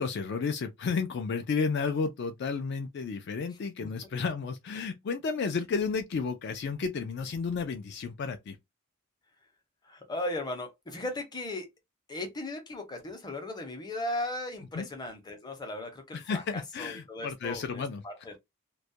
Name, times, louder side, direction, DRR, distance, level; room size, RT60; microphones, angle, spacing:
voice 1, 0.0-8.6 14.7-14.9 16.1-18.0, left 5 dB, 55° left, 0.3 m, -32 dB
voice 2, 9.8-11.7 12.1-18.4, left 1 dB, 20° left, 0.6 m, -37 dB
2.3 x 2.1 x 2.6 m
head